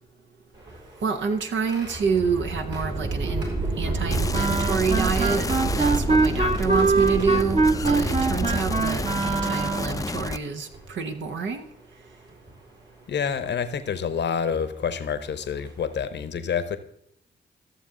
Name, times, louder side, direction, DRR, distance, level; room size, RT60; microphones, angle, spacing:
sound 1, 0.5-9.8 10.7-10.8 12.3-12.5 13.3-13.5 15.1-15.2 15.6-15.8, right 2 dB, 65° right, 4.6 m, -29 dB
voice 1, 1.0-3.5 3.8-5.5 5.7-11.7, right 5 dB, 85° right, 6 dB, 0.9 m, -28 dB
sound 2, 4.1-10.4, left 3 dB, 20° left, 0.4 m, -32 dB
Wind instrument woodwind instrument, 4.3-10.1, right 3 dB, 35° right, 0.9 m, -23 dB
voice 2, 13.1-16.8, left 7 dB, 70° left, 12 dB, 0.9 m, -28 dB
13.5 x 7.0 x 3.8 m, 0.78 s
supercardioid pair, 40°, 19 cm